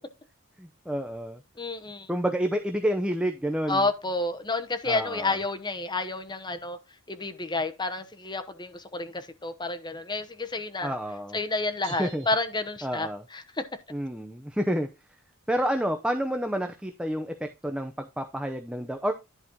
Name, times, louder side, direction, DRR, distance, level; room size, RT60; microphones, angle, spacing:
voice 1, 0.6-1.4 2.1-3.8 4.9-5.4 10.8-11.4 12.0-12.3 12.8-13.2 13.9-14.9 15.5-19.1, equal, 5° right, 0.6 m, -29 dB
voice 2, 1.6-2.1 3.7-6.8 7.1-10.9 11.3-13.7, left 3 dB, 20° left, 0.9 m, -30 dB
sound 1, 11.8-13.4, right 6 dB, 65° right, 2.1 m, -49 dB
11.0 x 4.2 x 4.6 m
head